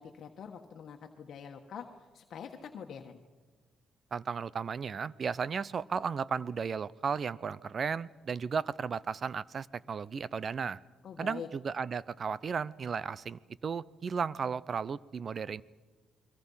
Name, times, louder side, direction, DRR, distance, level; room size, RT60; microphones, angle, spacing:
voice 1, 0.0-3.2 11.0-11.5, left 7 dB, 60° left, 3 dB, 1.5 m, -45 dB
voice 2, 4.1-10.8 11.2-15.6, right 6 dB, 45° right, 21 dB, 0.7 m, -34 dB
29.5 x 22.5 x 5.7 m, 1.3 s
cardioid pair, 90°, 0 cm